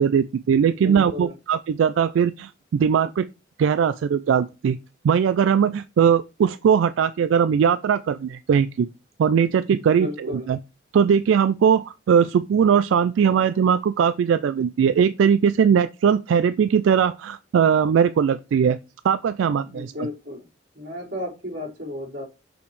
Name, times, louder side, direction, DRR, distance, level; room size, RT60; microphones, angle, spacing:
voice 1, 0.0-3.3 3.6-4.8 5.0-8.9 9.2-10.6 10.9-18.8 19.0-19.9, right 7 dB, 90° right, 0.3 m, -20 dB
voice 2, 0.7-1.4 9.8-10.5 19.6-20.5 20.7-22.2, left 2 dB, 65° right, 4.2 m, -33 dB
6.2 x 5.7 x 3.2 m
head